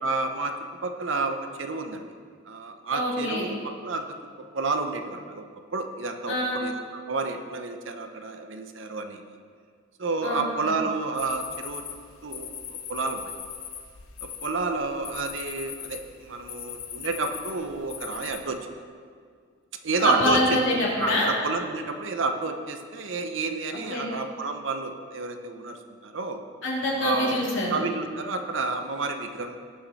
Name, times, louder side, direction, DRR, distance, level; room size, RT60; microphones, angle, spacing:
voice 1, 0.0-0.5 0.8-2.0 2.5-3.6 3.8-4.0 4.5-5.5 5.7-6.8 7.1-9.2 10.0-11.8 12.2-12.5 12.9-13.3 14.2-18.6 19.8-20.6 21.0-25.8 26.0-26.4 27.0-27.4 27.7-29.6, right 3 dB, 60° right, 6 dB, 0.8 m, -30 dB
voice 2, 2.9-3.4 6.3-6.6 10.2-10.7 20.0-21.3 23.9-24.1 26.6-27.8, left 1 dB, 60° left, -5 dB, 3.0 m, -26 dB
sound 1, 11.1-18.4, left 9 dB, 85° left, 1.1 m, -40 dB
18.0 x 6.2 x 4.2 m, 2.1 s
head